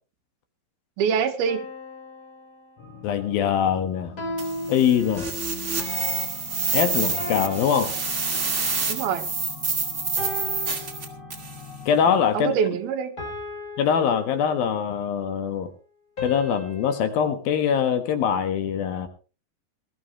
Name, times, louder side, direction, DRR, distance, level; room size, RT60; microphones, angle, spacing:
voice 1, 1.0-1.7 8.3-8.4 8.9-9.3 12.3-13.1, right 7 dB, 85° right, 7 dB, 3.2 m, -25 dB
sound 1, 1.4-3.1 4.2-5.7 7.2-8.8 10.2-11.7 13.2-14.9 16.2-17.2, left 2 dB, 25° left, 4.7 m, -37 dB
sound 2, 2.8-12.3, left 5 dB, 50° left, 2.2 m, -43 dB
voice 2, 3.0-4.1 4.7-5.3 6.7-7.9 11.9-12.5 13.8-15.7 16.2-19.1, left 8 dB, 75° left, 8 dB, 3.3 m, -23 dB
sound 3, 4.4-11.6, right 4 dB, 25° right, 1.8 m, -28 dB
20.0 x 13.5 x 3.1 m, 0.34 s
omnidirectional pair, 4.3 m